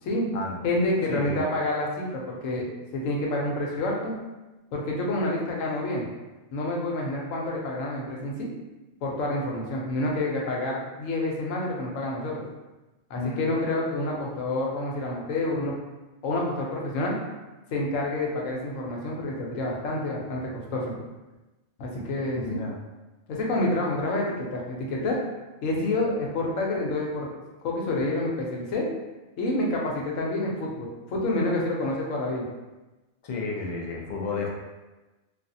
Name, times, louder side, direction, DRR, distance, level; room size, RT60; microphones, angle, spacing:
voice 1, 0.0-0.3 0.6-2.7 2.9-4.1 4.7-6.1 6.5-8.5 9.0-12.4 13.1-15.7 16.2-17.2 17.7-20.9 21.8-22.7 23.3-25.2 25.6-27.3 27.6-28.9 29.4-32.5, left 2 dB, 85° left, -2 dB, 1.1 m, -28 dB
voice 2, 1.1-1.5 13.1-13.4 22.4-22.7 33.2-34.5, left 4 dB, 65° left, -1 dB, 0.3 m, -32 dB
3.3 x 2.4 x 2.6 m, 1.1 s
omnidirectional pair, 1.3 m